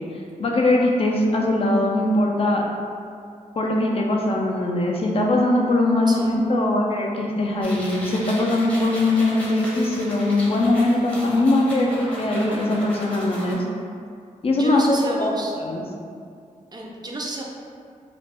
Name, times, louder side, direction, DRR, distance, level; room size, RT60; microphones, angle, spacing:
voice 1, 0.4-2.6 3.6-13.7 14.4-15.8, left 2 dB, 45° left, -1 dB, 0.4 m, -21 dB
voice 2, 6.1-6.4 14.6-15.5 16.7-17.4, right 1 dB, 30° right, -2 dB, 0.4 m, -31 dB
sound 1, 7.6-13.5, equal, 10° left, 0.7 m, -36 dB
2.4 x 2.0 x 3.3 m, 2.3 s
cardioid pair, 80°, 14 cm